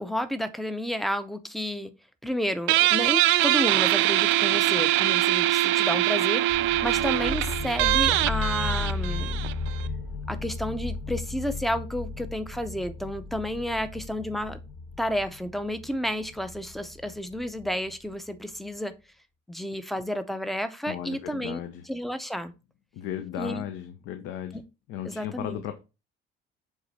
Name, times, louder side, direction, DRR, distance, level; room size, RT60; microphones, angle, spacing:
voice 1, 0.0-1.9 2.2-6.5 6.8-9.4 10.3-14.6 15.0-18.9 19.5-21.6 21.8-22.5 23.4-23.6 24.5-24.6 25.0-25.6, equal, ahead, 0.5 m, -31 dB
Guitar, 2.7-9.9, right 15 dB, 80° right, 0.5 m, -23 dB
sound 1, 6.5-17.9, left 4 dB, 30° left, 1.6 m, -34 dB
voice 2, 20.9-21.8 22.9-24.6 24.9-25.8, left 10 dB, 80° left, 0.8 m, -35 dB
8.1 x 3.6 x 4.1 m
cardioid pair, 165°, 20 cm